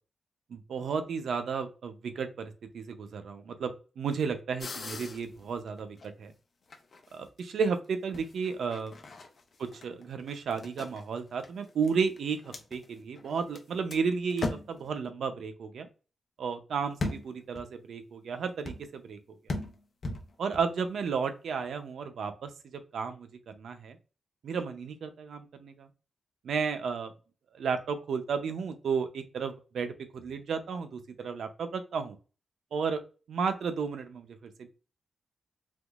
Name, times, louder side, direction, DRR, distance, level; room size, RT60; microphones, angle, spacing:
voice 1, 0.5-6.3 7.1-8.9 9.8-15.9 16.4-19.2 20.4-22.5 22.9-24.0 24.4-25.9 26.4-27.1 27.5-32.2 32.7-33.0 33.3-34.7, right 5 dB, 80° right, 8 dB, 0.5 m, -33 dB
sound 1, 4.6-6.3 6.7-7.4 8.1-13.6 13.9-14.0 14.3-14.9 17.0-17.6 18.6-19.0 19.5-20.6, left 2 dB, 50° left, 0.7 m, -38 dB
3.5 x 3.0 x 2.3 m, 0.34 s
cardioid pair, 100°, 0 cm